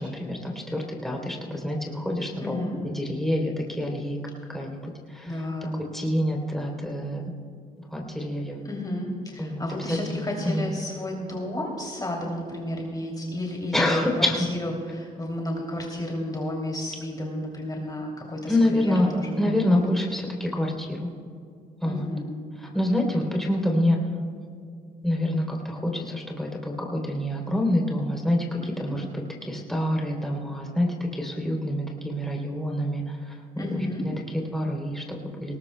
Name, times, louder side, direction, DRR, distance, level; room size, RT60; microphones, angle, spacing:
voice 1, 0.0-2.6 2.8-4.2 4.5-5.4 5.9-7.2 7.8-8.6 9.4-10.7 13.7-14.5 18.5-19.1 19.4-21.1 21.8-22.1 22.6-24.0 25.0-35.6, left 1 dB, ahead, -1 dB, 3.3 m, -27 dB
voice 2, 2.4-2.8 5.3-5.8 8.6-14.0 14.4-19.8 21.8-22.3 28.6-29.0 33.6-34.1, left 1 dB, 25° left, -1 dB, 2.9 m, -32 dB
19.0 x 19.0 x 2.3 m, 2.3 s
supercardioid pair, 70°, 17 cm